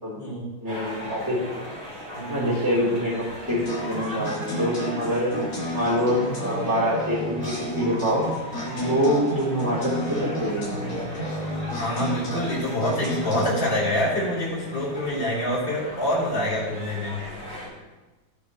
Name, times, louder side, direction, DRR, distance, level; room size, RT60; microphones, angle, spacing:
voice 1, 0.6-1.7 2.3-5.3 5.7-8.3 8.8-10.6, equal, 10° right, -7 dB, 3.3 m, -25 dB
sound 1, 0.7-17.7, equal, 80° right, 3.7 m, -39 dB
voice 2, 2.1-2.5 8.6-8.9 11.8-17.2, left 1 dB, 65° left, -7 dB, 4.0 m, -26 dB
sound 2, 3.5-13.9, equal, 45° left, 3.8 m, -31 dB
18.0 x 6.4 x 3.1 m, 1.2 s
omnidirectional pair, 2.2 m